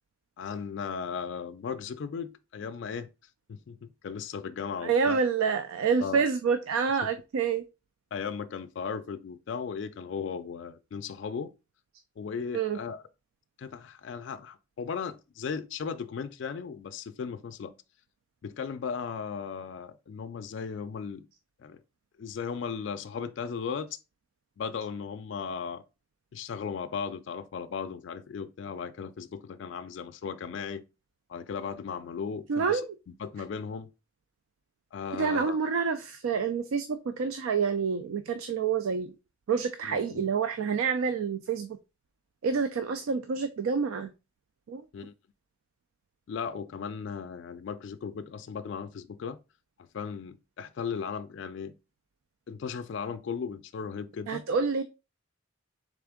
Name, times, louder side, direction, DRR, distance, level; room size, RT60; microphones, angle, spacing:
voice 1, 0.4-3.1 3.5-5.2 6.0-6.2 7.0-7.1 8.1-11.5 12.2-13.0 13.6-17.7 18.4-21.3 21.6-21.8 22.2-24.0 24.6-25.8 26.3-30.8 31.3-32.9 33.2-33.9 34.9-35.6 39.9-40.3 44.9-45.1 46.3-49.4 49.9-51.8 52.5-54.4, left 6 dB, 60° left, 0.3 m, -36 dB
voice 2, 4.8-7.6 12.5-12.8 32.5-32.8 35.2-39.2 39.5-41.8 42.4-44.1 44.7-44.8 54.3-54.8, right 5 dB, 90° right, 0.4 m, -28 dB
3.6 x 3.4 x 3.6 m
head